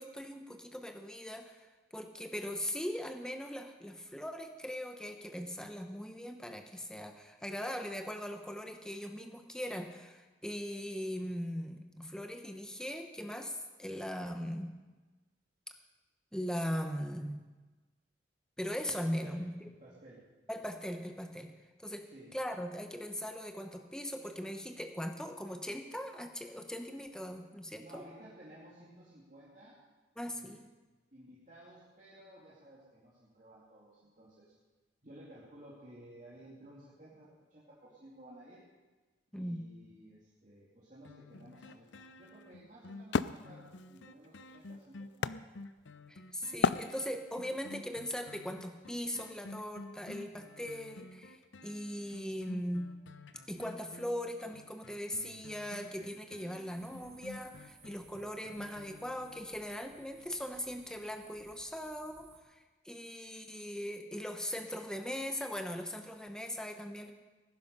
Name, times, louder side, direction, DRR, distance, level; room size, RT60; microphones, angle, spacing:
voice 1, 0.0-1.7 1.9-14.8 16.3-17.4 18.6-19.5 20.5-21.5 21.8-22.0 22.3-28.0 30.2-30.7 39.3-39.6 46.1-52.9 53.5-67.1, equal, 5° left, 5 dB, 0.9 m, -40 dB
voice 2, 18.8-20.2 22.0-22.3 27.8-29.8 30.2-30.6 31.1-34.5 35.0-38.6 39.3-45.3, right 1 dB, 40° right, -7 dB, 2.6 m, -55 dB
sound 1, 41.0-59.7 60.2-60.3, left 2 dB, 90° left, 0.7 m, -51 dB
Wood, 41.4-46.1 46.6-47.5, left 6 dB, 70° left, 0.4 m, -35 dB
sound 2, 56.7-62.4, right 5 dB, 65° right, 2.0 m, -61 dB
17.5 x 10.5 x 5.4 m, 1.3 s
head